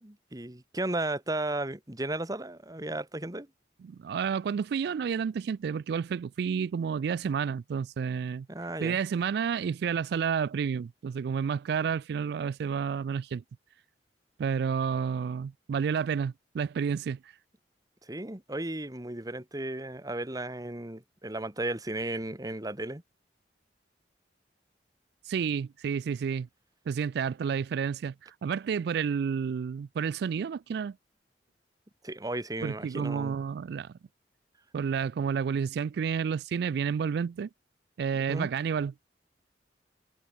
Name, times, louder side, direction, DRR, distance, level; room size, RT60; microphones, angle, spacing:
voice 1, 0.0-3.5 8.5-9.0 18.0-23.0 32.0-33.3 38.3-38.5, right 2 dB, 20° right, 1.6 m, -34 dB
voice 2, 3.8-8.5 8.8-13.4 14.4-17.2 25.3-26.5 26.9-28.1 28.4-31.0 32.6-33.9 34.7-37.5 38.0-38.9, right 6 dB, 60° right, 0.3 m, -30 dB
head